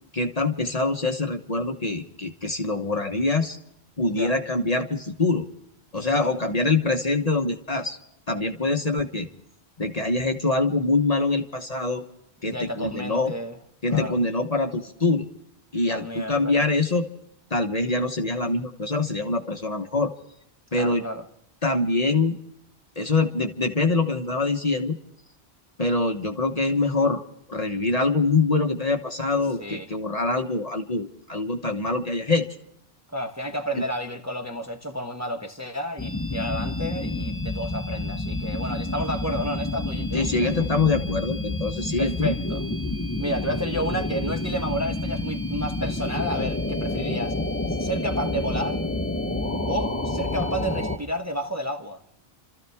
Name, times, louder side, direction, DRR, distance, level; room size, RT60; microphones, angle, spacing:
voice 1, 0.1-3.6 4.0-5.5 5.9-8.0 8.3-9.3 9.8-12.0 12.4-13.3 13.8-15.3 15.7-17.1 17.5-20.1 20.7-21.0 21.6-22.4 23.0-25.0 25.8-27.2 27.5-32.5 33.7-33.8 40.1-42.3, left 3 dB, 35° left, 1.2 m, -24 dB
voice 2, 12.5-13.6 13.9-14.2 15.9-16.7 20.7-21.2 29.6-29.9 33.1-40.7 42.0-42.6 43.2-47.4 47.8-48.8 49.7-52.0, equal, 15° right, 1.1 m, -31 dB
sound 1, 36.0-51.0, left 2 dB, 10° left, 1.1 m, -29 dB
29.5 x 14.0 x 3.5 m
omnidirectional pair, 1.1 m